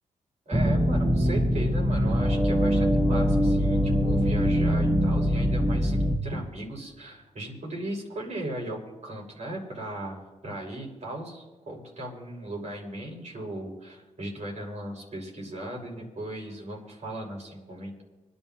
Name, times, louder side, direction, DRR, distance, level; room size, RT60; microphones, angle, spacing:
sound 1, 0.5-6.2, equal, 15° right, 1.5 m, -23 dB
voice 1, 0.5-18.0, right 1 dB, 55° right, -1 dB, 5.9 m, -37 dB
26.0 x 11.0 x 3.0 m, 1.2 s
cardioid pair, 60°, 14 cm